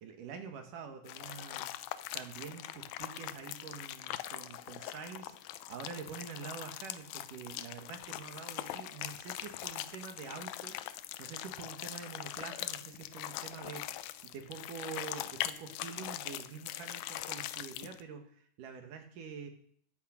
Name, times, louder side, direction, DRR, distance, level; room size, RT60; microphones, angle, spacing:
voice 1, 0.0-1.7 2.1-5.3 5.7-10.8 11.2-19.5, right 6 dB, 60° right, 5 dB, 2.9 m, -46 dB
sound 1, 1.1-18.0, left 14 dB, 80° left, 2.2 m, -42 dB
15.0 x 13.0 x 5.1 m, 0.62 s
omnidirectional pair, 4.7 m